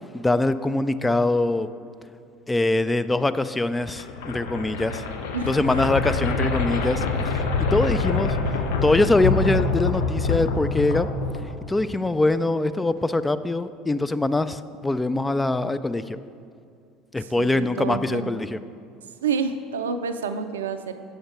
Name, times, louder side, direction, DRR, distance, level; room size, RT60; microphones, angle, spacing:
voice 1, 0.1-1.7 2.5-5.1 5.5-7.5 7.7-8.4 8.8-11.1 11.7-16.2 17.1-18.6, left 2 dB, 15° left, 12 dB, 0.3 m, -23 dB
sound 1, 3.8-11.9, left 4 dB, 70° left, 0.7 m, -26 dB
voice 2, 5.3-6.1 17.2-18.3 19.2-20.9, right 5 dB, 80° right, 9 dB, 0.4 m, -29 dB
7.9 x 6.5 x 4.5 m, 2.3 s
hypercardioid pair, 65°, 0 cm